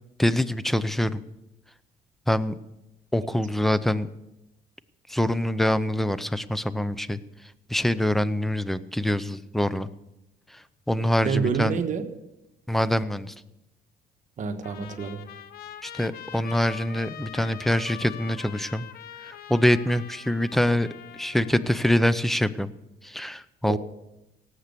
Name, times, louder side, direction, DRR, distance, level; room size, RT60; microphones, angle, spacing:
voice 1, 0.2-1.2 2.3-2.5 3.1-4.1 5.1-9.9 10.5-11.8 12.7-13.3 15.8-18.9 19.2-20.9 21.2-22.7 23.0-23.8, left 1 dB, ahead, 15 dB, 0.6 m, -25 dB
voice 2, 11.2-12.0 14.4-15.2 23.7-23.8, right 6 dB, 50° right, 6 dB, 1.4 m, -27 dB
Trumpet, 14.6-22.3, left 10 dB, 65° left, 0.9 m, -43 dB
18.0 x 8.2 x 6.8 m, 0.91 s
cardioid pair, 110°, 17 cm